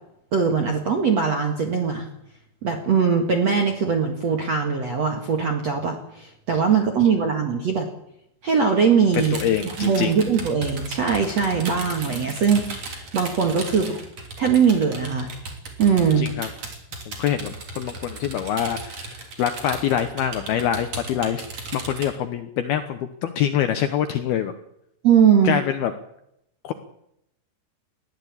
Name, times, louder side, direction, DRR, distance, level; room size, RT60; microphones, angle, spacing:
voice 1, 0.3-2.1 2.6-7.9 8.4-14.0 14.4-15.3 15.8-16.3 25.0-25.6, right 6 dB, 55° right, 4 dB, 1.8 m, -21 dB
sound 1, 9.1-22.1, right 3 dB, 35° right, 3.9 m, -36 dB
voice 2, 9.2-10.2 16.2-16.5 17.1-21.5 21.7-24.5 25.4-25.9 26.6-26.7, left 9 dB, 80° left, 9 dB, 2.2 m, -25 dB
20.5 x 14.5 x 8.7 m, 0.79 s
omnidirectional pair, 5.9 m